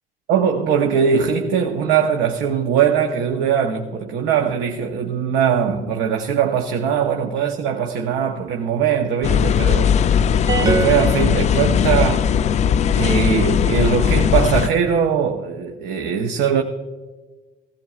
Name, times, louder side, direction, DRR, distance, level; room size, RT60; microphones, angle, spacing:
voice 1, 0.3-9.9 10.6-12.2 12.9-16.6, right 7 dB, 80° right, 0.9 m, -20 dB
sound 1, 9.2-14.7, left 8 dB, 45° left, 0.4 m, -18 dB
sound 2, 10.5-12.2, right 4 dB, 20° right, 0.4 m, -25 dB
16.0 x 15.0 x 2.4 m
cardioid pair, 110°, 17 cm